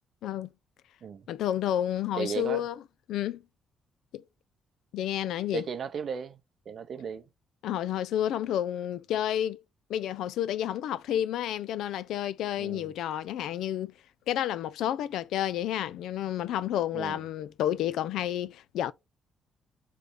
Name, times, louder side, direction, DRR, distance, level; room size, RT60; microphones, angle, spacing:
voice 1, 1.3-2.8 3.1-3.4 4.1-4.2 4.9-5.7 7.6-9.6 9.9-13.9 14.3-18.9, left 11 dB, 90° left, 0.4 m, -30 dB
voice 2, 2.2-2.7 5.5-6.4 6.7-7.2 12.6-12.9 16.9-17.2, right 7 dB, 45° right, 0.6 m, -35 dB
3.4 x 3.1 x 3.9 m
cardioid pair, 160°, 0 cm